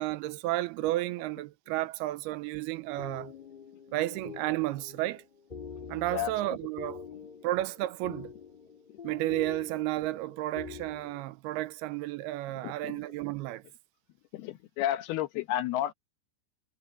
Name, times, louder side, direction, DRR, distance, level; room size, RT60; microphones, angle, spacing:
voice 1, 0.0-3.3 3.9-5.2 5.9-7.0 7.4-8.3 9.0-13.6, right 16 dB, 90° right, 2.6 m, -32 dB
sound 1, 2.7-11.2, left 6 dB, 20° left, 1.4 m, -46 dB
voice 2, 12.5-13.0 14.3-15.9, left 12 dB, 80° left, 3.0 m, -32 dB
omnidirectional pair, 4.6 m